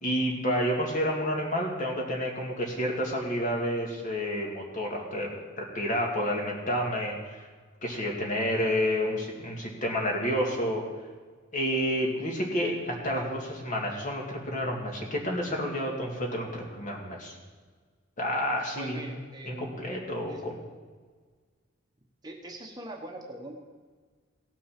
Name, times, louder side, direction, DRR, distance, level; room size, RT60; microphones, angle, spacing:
voice 1, 0.0-7.5 7.8-10.8 11.5-17.4 18.2-19.0 19.5-20.6, equal, 40° left, -1 dB, 2.3 m, -30 dB
voice 2, 18.7-19.7 20.3-20.4 22.2-23.6, right 1 dB, 20° right, 1 dB, 1.1 m, -41 dB
17.0 x 6.1 x 5.9 m, 1.5 s
head